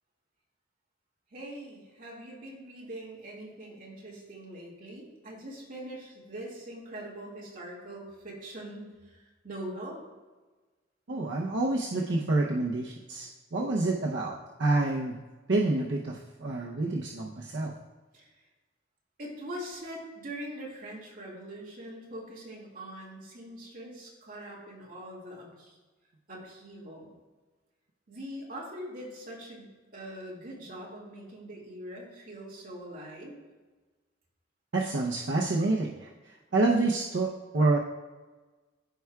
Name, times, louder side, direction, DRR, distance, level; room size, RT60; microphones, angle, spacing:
voice 1, 1.3-9.2 9.4-10.0 18.1-18.3 19.2-25.7 26.3-27.1 28.1-33.4, right 1 dB, 45° right, -4 dB, 2.0 m, -42 dB
voice 2, 11.1-14.3 14.6-15.2 15.5-17.7 34.7-37.8, right 2 dB, 70° right, -2 dB, 0.7 m, -28 dB
14.0 x 4.7 x 2.3 m, 1.3 s
head